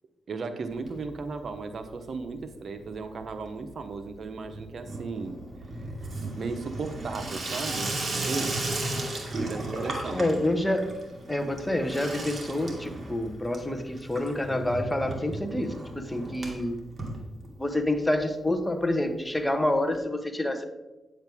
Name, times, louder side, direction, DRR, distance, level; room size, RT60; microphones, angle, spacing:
voice 1, 0.3-5.4 5.7-5.9 6.4-8.8 9.3-10.2, right 4 dB, 60° right, 8 dB, 0.9 m, -36 dB
Water tap faucet / Sink (filling or washing), 0.7-1.5 1.7-2.3 2.6-17.9 18.2-18.3 18.5-18.6 18.8-18.9 19.9-20.0, right 2 dB, 40° right, 2.3 m, -36 dB
voice 2, 10.1-10.8 11.3-16.8 17.6-20.7, left 1 dB, 10° left, 6 dB, 1.1 m, -27 dB
9.1 x 7.8 x 3.5 m, 1.1 s
cardioid pair, 75°, 0 cm